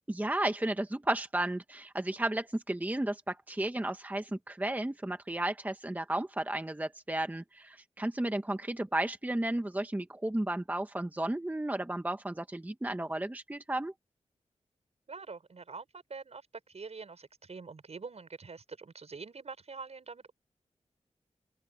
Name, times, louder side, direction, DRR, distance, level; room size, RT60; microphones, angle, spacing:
voice 1, 0.1-13.9, right 1 dB, 15° right, 1.2 m, -33 dB
voice 2, 15.1-20.3, right 4 dB, 60° right, 6.0 m, -45 dB
open air
wide cardioid pair, 85°, 12 cm